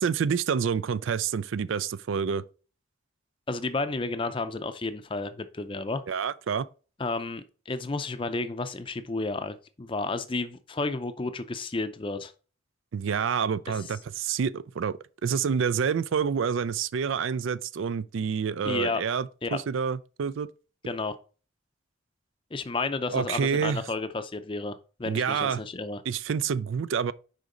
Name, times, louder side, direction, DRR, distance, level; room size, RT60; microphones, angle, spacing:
voice 1, 0.0-2.4 6.1-6.7 12.9-20.5 23.1-23.8 25.1-25.6 26.1-27.1, right 6 dB, 70° right, 0.4 m, -28 dB
voice 2, 3.5-6.0 7.0-12.3 18.6-19.0 19.4-19.6 20.9-21.1 22.5-26.0, left 3 dB, 25° left, 0.5 m, -32 dB
6.5 x 5.0 x 3.8 m
head